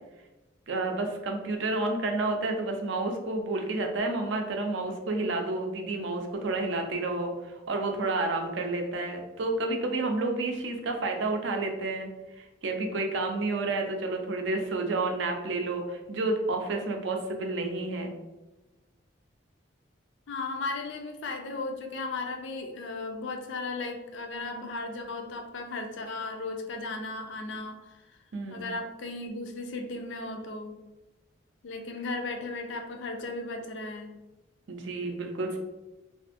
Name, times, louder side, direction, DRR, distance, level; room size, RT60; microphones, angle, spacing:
voice 1, 0.7-12.1 12.4-18.1 28.3-28.7 34.7-35.6, right 2 dB, 70° right, 3 dB, 0.4 m, -30 dB
voice 2, 20.3-28.2 28.5-30.7 31.6-34.1, left 3 dB, 70° left, 4 dB, 0.4 m, -36 dB
2.5 x 2.4 x 2.5 m, 1.1 s
head